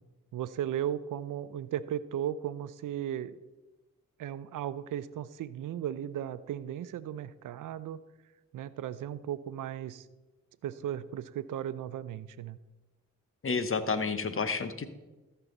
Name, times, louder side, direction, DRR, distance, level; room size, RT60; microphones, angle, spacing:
voice 1, 0.3-3.4 4.2-8.0 8.5-10.1 10.6-12.6, right 10 dB, 65° right, 15 dB, 0.5 m, -36 dB
voice 2, 13.4-14.9, left 4 dB, 40° left, 11 dB, 1.0 m, -30 dB
13.5 x 5.7 x 4.0 m, 1.1 s
supercardioid pair, 45°, 34 cm